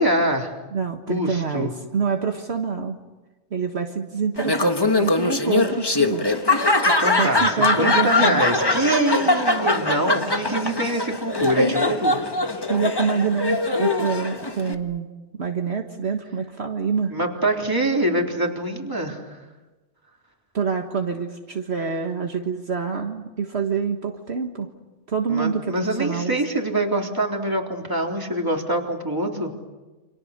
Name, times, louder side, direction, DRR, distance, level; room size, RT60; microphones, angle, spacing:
voice 1, 0.0-0.6 1.1-1.7 7.0-12.2 17.1-19.4 25.3-29.5, right 1 dB, 15° right, 0 dB, 3.6 m, -24 dB
voice 2, 0.7-3.0 3.5-6.3 7.2-8.4 11.6-11.8 12.7-15.1 15.3-17.1 20.5-24.7 25.1-26.4, right 5 dB, 60° right, 3 dB, 1.7 m, -26 dB
Laughter, 4.4-14.7, left 2 dB, 20° left, 1.4 m, -22 dB
29.0 x 27.0 x 6.7 m, 1.1 s
omnidirectional pair, 1.2 m